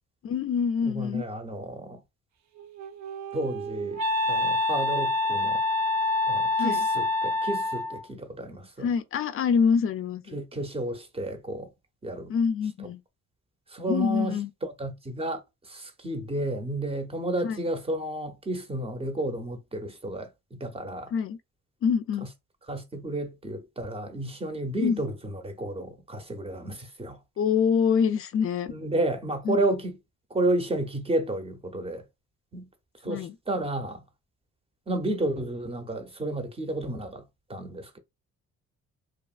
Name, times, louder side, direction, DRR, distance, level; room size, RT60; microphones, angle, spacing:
voice 1, 0.2-1.2 6.6-6.8 8.8-10.4 12.3-13.0 13.9-14.5 17.4-17.6 21.1-21.4 21.8-22.3 24.8-25.0 27.4-28.7 29.4-29.6 33.1-33.4, left 6 dB, 45° left, 0.4 m, -25 dB
voice 2, 0.8-2.0 3.3-5.6 6.3-8.9 10.3-11.7 12.0-12.3 13.7-15.4 15.7-21.1 22.7-25.1 25.4-27.2 28.7-30.0 30.3-32.0 32.5-32.7 33.0-34.0 34.9-37.2 37.5-38.0, right 1 dB, 20° right, 0.6 m, -31 dB
Wind instrument woodwind instrument, 2.6-8.1, left 2 dB, 65° right, 0.5 m, -27 dB
2.8 x 2.3 x 2.3 m
cardioid pair, 90°, 30 cm